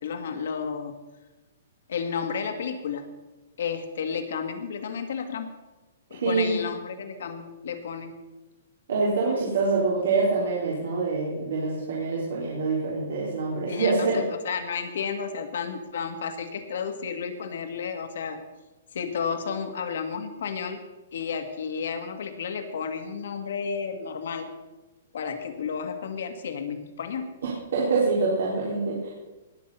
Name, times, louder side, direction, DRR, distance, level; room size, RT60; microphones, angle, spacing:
voice 1, 0.0-0.9 1.9-3.1 3.6-5.6 6.1-8.1 13.7-18.4 18.9-20.8 21.1-24.5 25.1-27.3, left 6 dB, 55° left, 7 dB, 1.9 m, -32 dB
voice 2, 6.2-6.5 8.9-14.2 27.7-29.1, right 3 dB, 70° right, -5 dB, 3.9 m, -25 dB
20.0 x 7.8 x 5.6 m, 1.1 s
hypercardioid pair, 180°, 0 cm